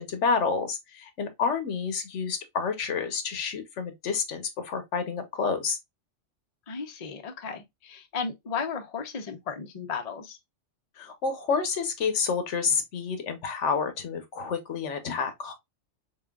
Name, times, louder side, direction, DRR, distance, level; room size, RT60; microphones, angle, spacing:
voice 1, 0.0-5.8 11.0-15.5, left 5 dB, 80° left, 1.1 m, -29 dB
voice 2, 6.7-10.4, left 5 dB, 40° left, 0.7 m, -35 dB
3.9 x 3.8 x 2.3 m
omnidirectional pair, 1.2 m